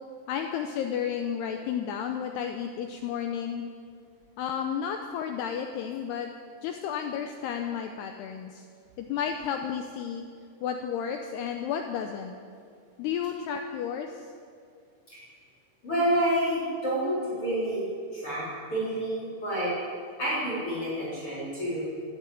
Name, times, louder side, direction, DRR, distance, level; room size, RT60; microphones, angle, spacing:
voice 1, 0.3-3.7 4.4-6.3 6.6-8.7 9.0-10.3 10.6-12.3 13.0-14.3, left 8 dB, 85° left, 5 dB, 2.4 m, -32 dB
voice 2, 15.8-17.9 18.1-18.4 18.7-19.7 20.2-21.9, right 1 dB, 30° left, -8 dB, 4.5 m, -28 dB
13.0 x 11.5 x 9.2 m, 2.2 s
omnidirectional pair, 5.6 m